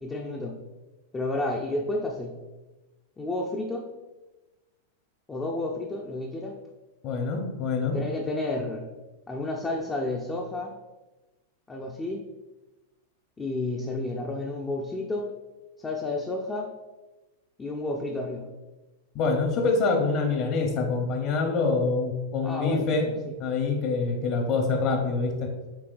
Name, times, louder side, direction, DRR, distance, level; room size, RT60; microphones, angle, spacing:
voice 1, 0.0-0.6 1.1-2.4 3.2-3.9 5.3-6.6 7.9-8.9 9.3-10.8 11.7-12.3 13.4-15.3 15.8-16.7 17.6-18.5 22.4-23.3, left 2 dB, 15° left, 0 dB, 0.4 m, -31 dB
voice 2, 7.0-8.0 19.1-23.1 23.4-25.5, left 4 dB, 45° left, 2 dB, 0.9 m, -25 dB
4.8 x 3.2 x 2.5 m, 1.1 s
hypercardioid pair, 105°, 0 cm